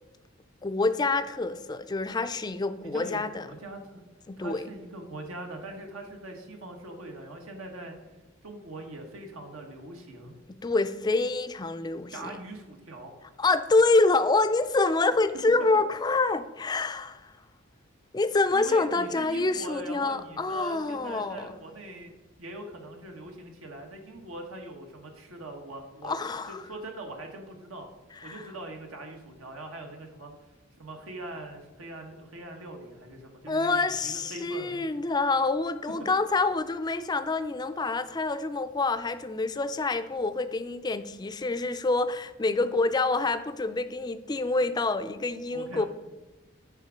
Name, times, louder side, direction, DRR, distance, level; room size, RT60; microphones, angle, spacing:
voice 1, 0.6-3.5 4.3-4.6 10.6-12.3 13.4-17.3 18.1-21.6 26.0-26.6 28.2-28.5 33.5-45.8, left 3 dB, 20° left, 10 dB, 0.4 m, -27 dB
voice 2, 2.8-4.0 4.4-7.9 8.4-10.4 12.1-13.1 18.5-22.1 22.4-26.1 26.5-27.9 28.2-30.3 30.8-34.9 45.5-45.9, right 2 dB, 80° right, 2 dB, 1.2 m, -42 dB
9.5 x 3.6 x 6.2 m, 1.1 s
head